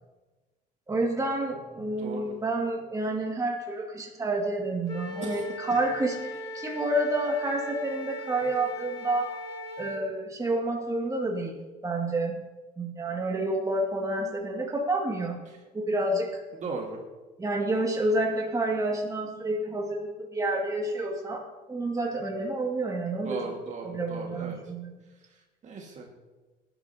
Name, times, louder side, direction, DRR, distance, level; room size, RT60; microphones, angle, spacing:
voice 1, 0.9-9.3 9.8-11.6 11.8-12.4 12.8-15.4 15.7-16.4 17.4-23.4 23.8-25.0, right 2 dB, 20° right, 0 dB, 2.2 m, -29 dB
voice 2, 2.0-2.4 5.2-5.5 15.5-15.6 16.5-17.0 23.2-24.6 25.3-26.1, right 4 dB, 45° right, 0 dB, 2.0 m, -38 dB
Wind instrument woodwind instrument, 4.9-10.0, left 1 dB, 30° left, 2.4 m, -39 dB
18.5 x 11.0 x 2.9 m, 1.2 s
cardioid pair, 110°, 17 cm